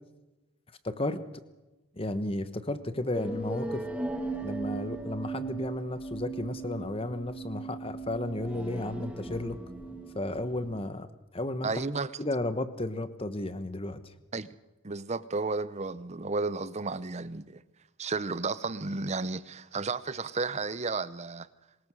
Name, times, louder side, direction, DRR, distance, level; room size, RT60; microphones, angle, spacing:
voice 1, 0.8-1.2 1.9-3.8 4.4-9.6 10.1-11.1 11.3-11.8 12.2-14.1, left 1 dB, 25° left, 1.2 m, -33 dB
sound 1, 3.1-10.8, right 3 dB, 5° right, 1.8 m, -38 dB
voice 2, 11.6-12.1 14.3-14.6 14.8-17.6 18.0-21.5, right 3 dB, 30° right, 0.7 m, -33 dB
23.5 x 21.0 x 6.4 m
head